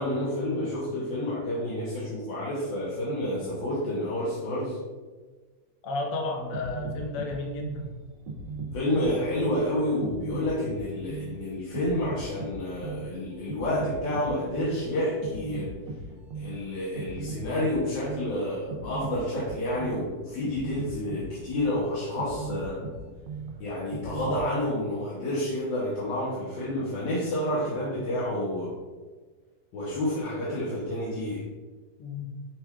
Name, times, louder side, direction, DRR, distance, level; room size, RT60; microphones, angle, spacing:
voice 1, 0.0-4.8 8.7-15.7 16.3-22.8 23.6-28.7 29.7-31.4, left 1 dB, 80° left, -7 dB, 1.6 m, -29 dB
voice 2, 5.8-7.9 32.0-32.4, left 2 dB, 60° left, 0 dB, 1.0 m, -32 dB
sound 1, 6.4-24.5, right 4 dB, 80° right, 1.3 m, -38 dB
6.0 x 2.3 x 3.4 m, 1.4 s
omnidirectional pair, 2.0 m